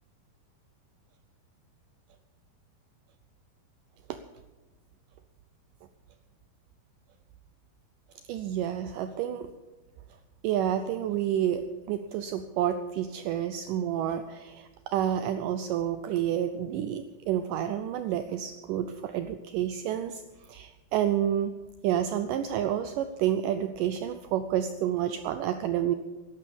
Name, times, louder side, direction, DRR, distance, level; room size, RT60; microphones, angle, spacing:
voice 1, 8.3-9.5 10.4-20.2 20.5-21.6 21.8-26.0, right 10 dB, 85° right, 9 dB, 1.9 m, -29 dB
12.0 x 11.5 x 7.2 m, 1.2 s
omnidirectional pair, 4.5 m